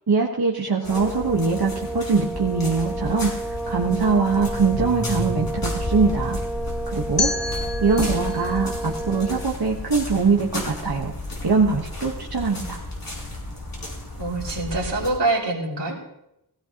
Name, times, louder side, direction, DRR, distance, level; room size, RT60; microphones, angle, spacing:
voice 1, 0.1-6.4 6.9-11.1 11.4-12.8, right 4 dB, 65° right, -1 dB, 1.4 m, -22 dB
sound 1, 0.8-15.1, left 1 dB, 55° left, 4.9 m, -32 dB
sound 2, 0.8-9.5, right 2 dB, ahead, 0.4 m, -32 dB
sound 3, 7.2-10.1, left 3 dB, 85° left, 1.5 m, -31 dB
voice 2, 7.4-7.7 14.2-16.0, right 2 dB, 90° right, -3 dB, 3.1 m, -26 dB
17.5 x 16.5 x 3.0 m, 0.84 s
wide cardioid pair, 60°, 41 cm